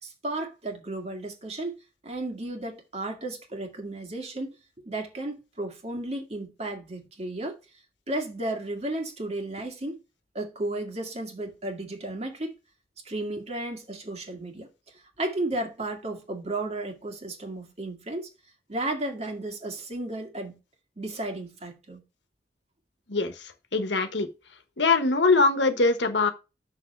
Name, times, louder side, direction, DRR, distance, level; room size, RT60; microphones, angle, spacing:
voice 1, 0.0-1.8 2.0-4.5 4.8-7.6 8.1-10.0 10.3-12.5 13.1-14.7 15.2-18.3 18.7-20.6 21.0-22.0, right 2 dB, 40° right, 2.1 m, -33 dB
voice 2, 23.1-24.3 24.8-26.3, left 3 dB, 75° left, 1.3 m, -23 dB
6.5 x 6.4 x 4.7 m
head